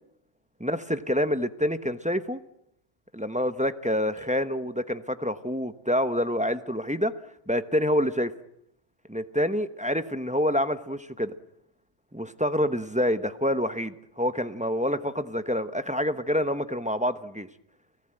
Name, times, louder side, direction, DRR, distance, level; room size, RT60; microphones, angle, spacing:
voice 1, 0.6-2.4 3.1-7.1 7.5-8.3 9.1-11.3 12.1-17.5, equal, 5° right, 10 dB, 0.9 m, -27 dB
sound 1, 4.2-5.3, left 2 dB, 85° left, 7.2 m, -51 dB
30.0 x 18.0 x 9.0 m, 0.79 s
omnidirectional pair, 1.2 m